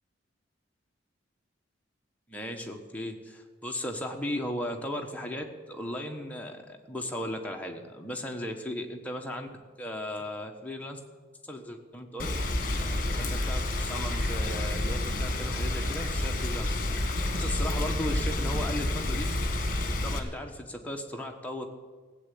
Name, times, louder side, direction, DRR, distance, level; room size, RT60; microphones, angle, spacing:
voice 1, 2.3-9.5 9.8-11.0 11.4-12.3 13.1-16.7 17.3-19.2 19.9-21.7, left 1 dB, 10° left, 2 dB, 1.3 m, -36 dB
Rain, 12.2-20.2, left 1 dB, 45° left, 1.7 m, -29 dB
16.5 x 8.3 x 8.4 m, 1.4 s
head